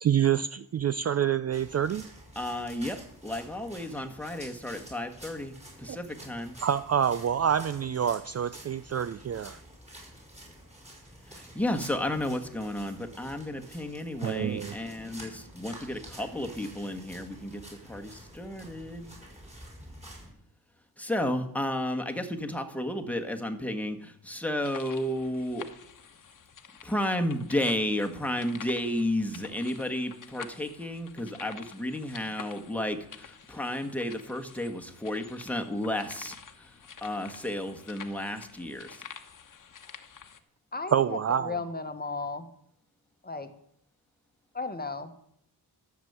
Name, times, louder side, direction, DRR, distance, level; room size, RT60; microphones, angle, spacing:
voice 1, 0.0-2.1 5.9-6.0 6.6-9.6 14.2-14.7 40.9-41.6, right 9 dB, 40° right, 15 dB, 0.4 m, -27 dB
sound 1, 1.5-20.3, right 1 dB, 15° right, 5.6 m, -49 dB
voice 2, 2.3-6.5 11.3-17.6 17.9-19.1 21.0-25.7 26.8-36.7 37.0-39.0, left 1 dB, 5° left, 4 dB, 1.6 m, -32 dB
sound 2, 24.6-40.4, left 7 dB, 55° left, 1.1 m, -49 dB
voice 3, 40.7-42.5 43.2-43.5 44.5-45.1, left 3 dB, 25° left, 8 dB, 1.2 m, -35 dB
13.0 x 7.1 x 8.1 m, 0.69 s
wide cardioid pair, 95°, 38 cm